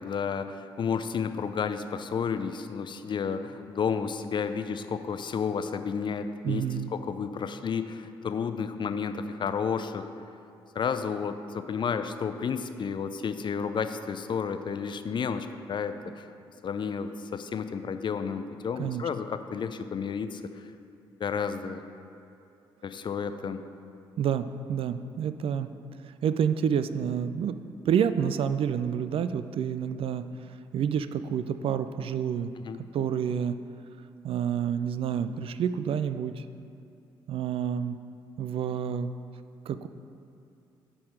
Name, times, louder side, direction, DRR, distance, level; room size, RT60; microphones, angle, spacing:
voice 1, 0.0-6.6 6.9-10.1 10.7-16.3 16.6-20.7 21.2-21.8 22.8-23.6 32.6-32.8, left 6 dB, 40° left, 9 dB, 0.5 m, -31 dB
voice 2, 6.4-6.9 18.8-19.0 24.2-25.7 26.2-27.6 27.8-30.3 30.7-32.5 32.9-33.6 34.2-36.4 37.3-38.0 38.4-39.1 39.7-39.9, right 8 dB, 50° right, 12 dB, 0.4 m, -28 dB
9.7 x 3.8 x 6.3 m, 2.7 s
figure-of-eight pair, 40°, 12 cm